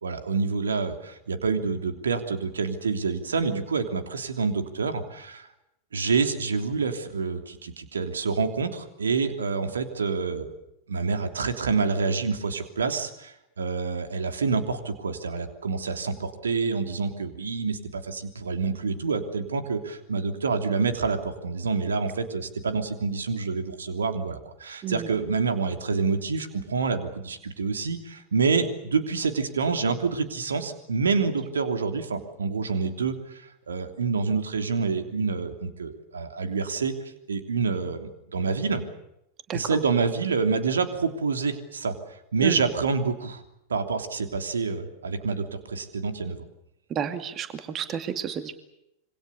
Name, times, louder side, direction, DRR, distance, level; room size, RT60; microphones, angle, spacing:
voice 1, 0.0-5.5 5.9-10.5 10.9-36.9 37.3-38.8 39.5-43.4 43.7-46.4, right 4 dB, 70° right, 7 dB, 3.2 m, -27 dB
voice 2, 46.9-48.5, right 8 dB, 30° right, 9 dB, 2.3 m, -31 dB
26.5 x 25.5 x 6.9 m, 0.83 s
figure-of-eight pair, 90°, 0 cm